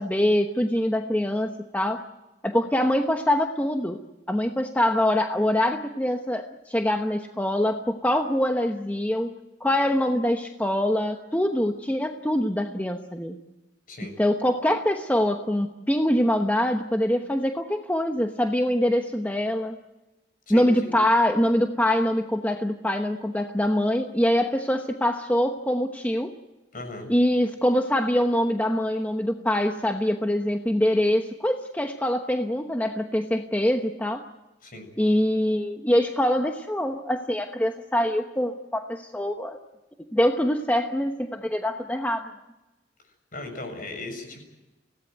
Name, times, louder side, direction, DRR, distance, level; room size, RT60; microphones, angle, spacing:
voice 1, 0.0-2.0 2.4-4.0 4.3-9.3 9.6-13.4 14.2-19.8 20.5-26.3 27.1-34.3 35.0-39.6 40.1-42.3, left 1 dB, 10° left, 4 dB, 1.0 m, -24 dB
voice 2, 20.5-20.9 26.7-27.1 34.6-34.9 43.0-44.4, left 2 dB, 50° left, 5 dB, 6.9 m, -37 dB
25.5 x 17.5 x 9.3 m, 1.1 s
head